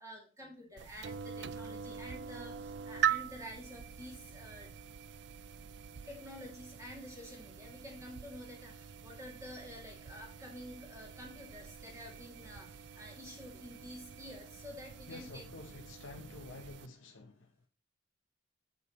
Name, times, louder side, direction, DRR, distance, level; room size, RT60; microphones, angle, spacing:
voice 1, 0.0-4.7 6.1-15.4, equal, 15° right, 2.5 m, -49 dB
sound 1, 0.8-16.9, right 8 dB, 60° right, 0.4 m, -42 dB
voice 2, 15.1-17.7, left 3 dB, 90° left, 0.9 m, -49 dB
8.4 x 7.8 x 3.1 m
head